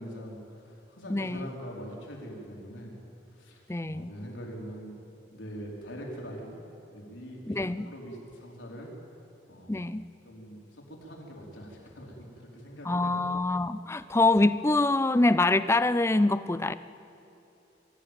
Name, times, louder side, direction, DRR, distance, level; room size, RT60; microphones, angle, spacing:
voice 1, 0.0-2.9 3.3-4.9 5.3-6.6 6.9-7.6 7.8-8.9 9.5-9.8 10.2-13.2, equal, 85° left, -2 dB, 4.7 m, -43 dB
voice 2, 1.1-1.5 3.7-4.1 7.5-7.9 9.7-10.0 12.9-16.7, left 2 dB, 15° left, 14 dB, 0.5 m, -25 dB
24.5 x 14.5 x 9.2 m, 2.8 s
head